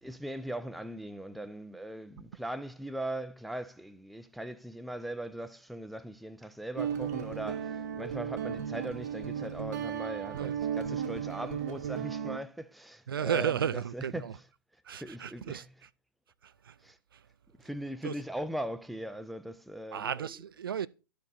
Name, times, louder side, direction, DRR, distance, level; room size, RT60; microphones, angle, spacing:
voice 1, 0.0-14.5 14.9-15.8 16.8-17.0 17.6-20.4, right 1 dB, ahead, 0.3 m, -40 dB
Guitar, 6.8-12.4, right 8 dB, 45° right, 0.9 m, -35 dB
voice 2, 13.1-14.3 14.9-15.6 16.4-16.7 18.0-18.1 19.9-20.9, right 8 dB, 65° right, 0.4 m, -33 dB
12.0 x 5.2 x 4.0 m
figure-of-eight pair, 110°, 13 cm